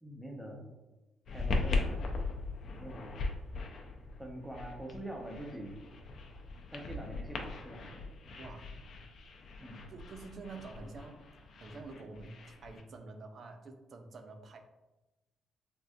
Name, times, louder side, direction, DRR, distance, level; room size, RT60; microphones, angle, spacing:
voice 1, 0.0-0.7 1.3-2.1 2.6-3.2 4.2-5.8 6.7-8.0 9.6-9.9 10.8-10.9, right 1 dB, 5° right, 0 dB, 0.8 m, -45 dB
sound 1, 1.3-12.8, left 3 dB, 65° left, 0.5 m, -39 dB
voice 2, 8.4-8.7 9.9-11.2 11.6-14.6, right 3 dB, 55° right, 6 dB, 0.5 m, -47 dB
3.4 x 2.5 x 2.6 m, 1.1 s
supercardioid pair, 65°, 0 cm